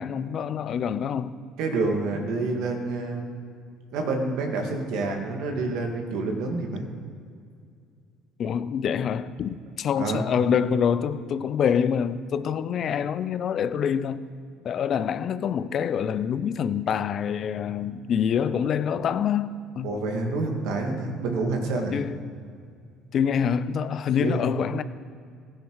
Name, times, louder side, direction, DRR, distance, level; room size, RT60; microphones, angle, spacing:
voice 1, 0.0-1.3 8.4-14.3 14.6-19.9 21.9-22.2 23.1-24.8, left 7 dB, 50° left, 0.6 m, -26 dB
voice 2, 1.6-3.3 3.9-6.9 10.0-10.3 19.8-21.9 24.2-24.4, right 3 dB, 70° right, 2.2 m, -28 dB
15.5 x 10.0 x 4.8 m
supercardioid pair, 80°, 0 cm